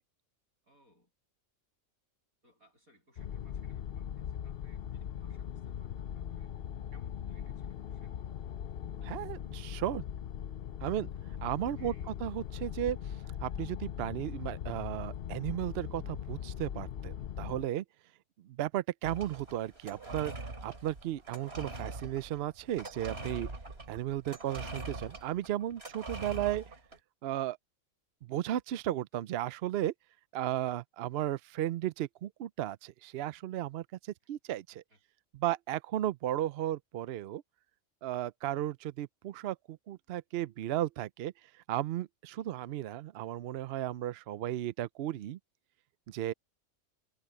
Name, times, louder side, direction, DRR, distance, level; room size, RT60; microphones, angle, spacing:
voice 1, 0.6-1.1 2.4-6.6 6.9-8.2 11.3-12.2 34.7-35.0 42.4-42.7, equal, 85° right, 8.4 m, -65 dB
sound 1, 3.2-17.7, left 9 dB, 55° left, 0.7 m, -40 dB
voice 2, 9.0-10.0 10.8-11.1 11.4-11.9 12.2-13.0 13.4-17.8 18.5-23.5 23.9-26.6 27.2-27.6 28.2-29.9 30.3-33.8 34.3-34.6 35.4-37.4 38.0-41.3 41.7-45.4 46.1-46.3, right 13 dB, 65° right, 0.6 m, -35 dB
sound 2, 19.0-27.0, right 2 dB, 45° right, 3.5 m, -43 dB
omnidirectional pair, 1.5 m